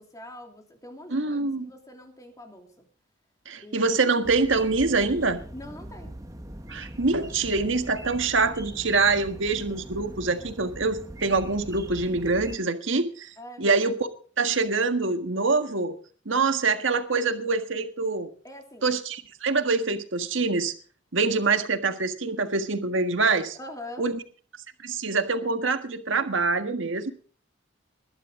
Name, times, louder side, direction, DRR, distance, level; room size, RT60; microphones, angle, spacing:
voice 1, 0.0-2.9 3.6-4.0 5.5-6.2 13.4-13.7 18.4-18.9 23.5-24.1, left 1 dB, 15° left, 3 dB, 2.9 m, -43 dB
voice 2, 1.1-1.7 3.4-5.4 6.7-13.9 14.4-15.9 16.2-18.3 18.8-20.7 21.1-23.6 24.0-24.1 24.8-27.1, right 3 dB, 70° right, 8 dB, 1.6 m, -25 dB
sound 1, 4.2-12.6, right 1 dB, 15° right, 1.2 m, -41 dB
20.5 x 11.5 x 3.8 m, 0.42 s
head